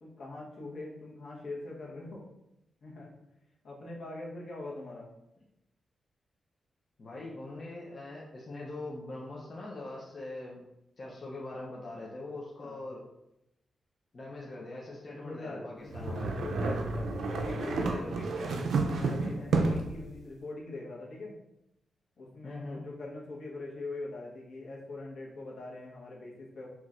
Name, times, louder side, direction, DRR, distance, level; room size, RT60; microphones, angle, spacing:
voice 1, 0.0-2.3 2.8-3.1 3.6-5.1 12.6-12.8 15.1-18.3 18.9-21.4 22.2-26.7, left 2 dB, 65° left, -3 dB, 1.1 m, -42 dB
voice 2, 7.0-10.6 11.0-13.0 14.1-16.3 17.5-18.6 22.4-22.8, left 2 dB, 40° left, -4 dB, 0.7 m, -42 dB
sound 1, 15.9-20.0, right 3 dB, 80° right, 0.5 m, -30 dB
5.7 x 3.0 x 2.5 m, 0.87 s
wide cardioid pair, 135°, 0 cm